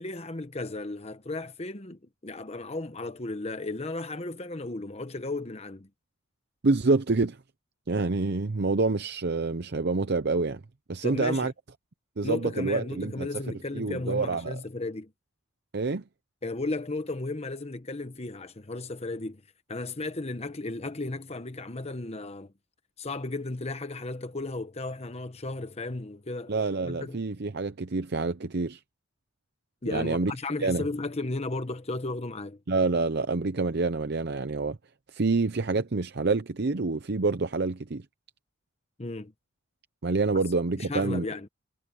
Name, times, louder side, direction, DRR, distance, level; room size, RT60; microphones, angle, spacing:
voice 1, 0.0-5.9 11.0-11.5 12.2-15.1 16.4-19.4 19.7-22.5 23.0-26.5 26.9-27.2 29.8-32.6 39.0-39.3 40.8-41.5, left 2 dB, 30° left, 1.0 m, -34 dB
voice 2, 6.6-7.4 7.9-10.6 10.9-11.5 12.2-13.3 13.7-14.6 15.7-16.0 26.5-28.8 29.9-30.3 30.6-30.8 32.7-34.8 35.1-38.0 40.0-41.3, right 3 dB, 55° right, 0.7 m, -27 dB
head